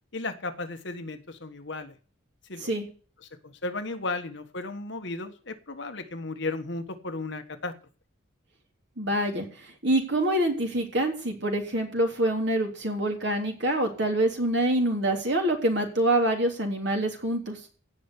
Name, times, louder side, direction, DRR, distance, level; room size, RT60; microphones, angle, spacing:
voice 1, 0.1-1.9 2.5-2.7 3.4-7.7, left 3 dB, 60° left, 8 dB, 1.4 m, -34 dB
voice 2, 9.0-9.5 9.8-17.6, right 1 dB, 55° right, 3 dB, 3.4 m, -26 dB
16.5 x 5.8 x 8.1 m, 0.38 s
head